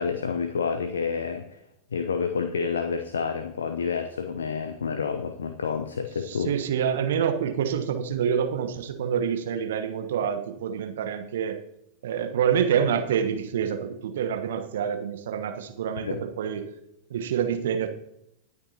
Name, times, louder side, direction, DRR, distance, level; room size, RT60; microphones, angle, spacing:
voice 1, 0.0-1.4 1.9-6.5 16.0-16.2, left 6 dB, 70° left, 8 dB, 0.7 m, -29 dB
voice 2, 6.2-11.6 12.0-16.7 17.1-17.9, right 8 dB, 60° right, 7 dB, 1.2 m, -27 dB
19.0 x 8.6 x 2.9 m, 0.82 s
figure-of-eight pair, 90°, 0 cm